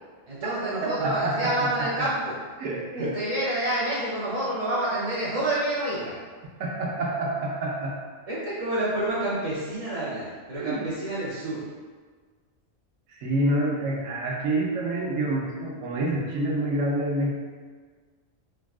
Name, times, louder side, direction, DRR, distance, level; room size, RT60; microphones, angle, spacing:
voice 1, 0.3-2.4 3.0-6.1 8.3-11.6, right 1 dB, 60° right, -9 dB, 0.4 m, -28 dB
voice 2, 0.8-2.1 2.6-3.2 6.6-7.9 10.5-10.8 13.1-17.4, right 1 dB, 80° right, -3 dB, 1.0 m, -27 dB
3.4 x 2.3 x 2.3 m, 1.5 s
omnidirectional pair, 1.3 m